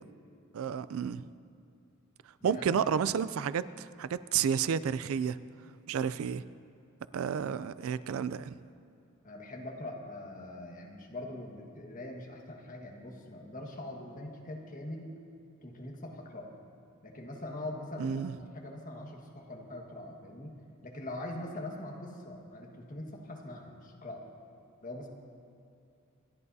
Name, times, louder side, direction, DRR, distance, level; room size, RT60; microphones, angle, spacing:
voice 1, 0.5-1.2 2.4-5.4 5.9-6.4 7.1-8.6 18.0-18.3, right 7 dB, 70° right, 15 dB, 0.4 m, -31 dB
voice 2, 2.4-2.8 9.2-15.1 15.6-16.5 17.0-20.6 20.8-24.2 24.8-25.1, left 1 dB, 40° left, 0 dB, 1.6 m, -42 dB
27.5 x 11.0 x 2.7 m, 2.5 s
head